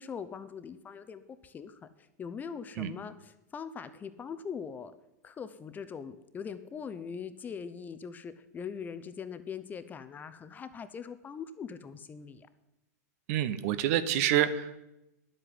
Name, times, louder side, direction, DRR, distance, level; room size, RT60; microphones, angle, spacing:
voice 1, 0.0-4.9 5.2-12.5, left 6 dB, 20° left, 12 dB, 0.7 m, -42 dB
voice 2, 13.3-14.8, right 11 dB, 55° right, 13 dB, 1.0 m, -27 dB
10.5 x 8.1 x 7.7 m, 0.90 s
hypercardioid pair, 125°, 9 cm